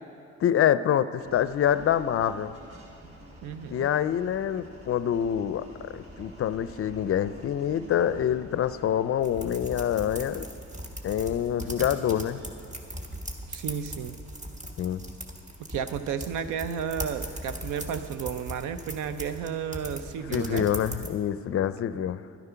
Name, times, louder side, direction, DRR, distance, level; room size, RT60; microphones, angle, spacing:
voice 1, 0.4-2.5 3.7-10.5 11.0-12.4 14.8-15.0 20.3-22.2, left 10 dB, 50° left, 14 dB, 0.4 m, -26 dB
sound 1, 1.2-20.6, right 1 dB, 50° right, 2.0 m, -51 dB
voice 2, 3.4-3.9 13.5-14.1 15.7-20.7, right 7 dB, 85° right, 11 dB, 0.6 m, -33 dB
sound 2, 9.2-21.1, equal, 25° right, 1.3 m, -39 dB
12.0 x 9.7 x 5.7 m, 2.9 s
cardioid pair, 90°, 30 cm